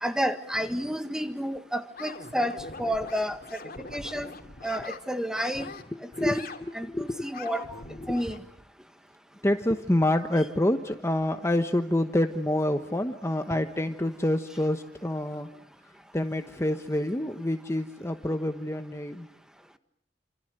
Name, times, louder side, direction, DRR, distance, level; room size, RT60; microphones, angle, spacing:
voice 1, 0.0-2.5 2.8-3.4 3.8-4.3 4.6-5.6 6.2-6.4 6.7-7.8 8.1-8.4, equal, 5° right, 1.6 m, -30 dB
sound 1, 2.0-5.0 5.3-5.8 6.1-6.6 7.1-8.4, left 3 dB, 55° left, 2.9 m, -42 dB
voice 2, 6.0-6.4 6.9-7.3 8.0-8.1 9.4-15.5 16.1-19.3, left 1 dB, 15° left, 1.1 m, -27 dB
29.0 x 26.5 x 6.7 m
head